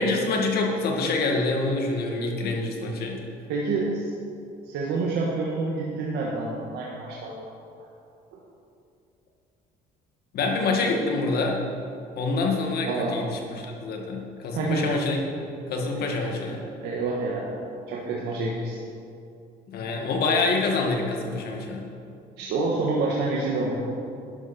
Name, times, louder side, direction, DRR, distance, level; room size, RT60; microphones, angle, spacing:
voice 1, 0.0-3.2 10.3-11.6 12.2-15.2 15.5-16.6 19.7-21.9, left 3 dB, 70° left, 1 dB, 2.1 m, -26 dB
voice 2, 3.5-4.1 4.6-7.5 8.3-8.4 12.8-13.2 14.5-14.9 15.9-16.5 16.8-18.8 22.4-23.8, right 3 dB, 85° right, -3 dB, 1.6 m, -28 dB
12.0 x 11.0 x 4.4 m, 2.5 s
cardioid pair, 110°, 17 cm